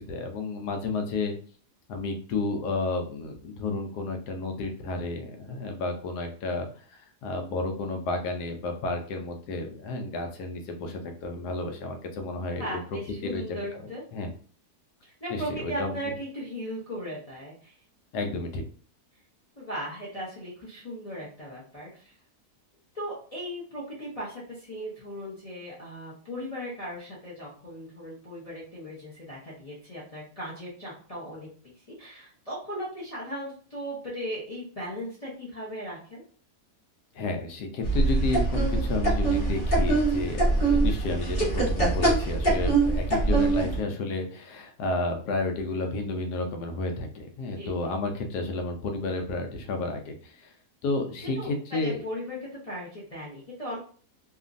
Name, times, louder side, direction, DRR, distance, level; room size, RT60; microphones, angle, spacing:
voice 1, 0.0-1.3 1.9-12.8 13.2-13.8 14.1-14.3 15.3-15.9 18.1-18.6 37.1-50.5 50.8-52.0, left 2 dB, 85° left, 4 dB, 1.2 m, -31 dB
voice 2, 12.6-14.0 15.0-17.8 19.6-22.1 22.9-31.5 31.8-36.2 47.6-47.9 51.4-52.4 52.6-53.8, equal, 40° left, -6 dB, 0.5 m, -37 dB
sound 1, 37.8-43.8, right 3 dB, 25° left, 1.1 m, -24 dB
2.9 x 2.5 x 2.4 m, 0.43 s
omnidirectional pair, 1.7 m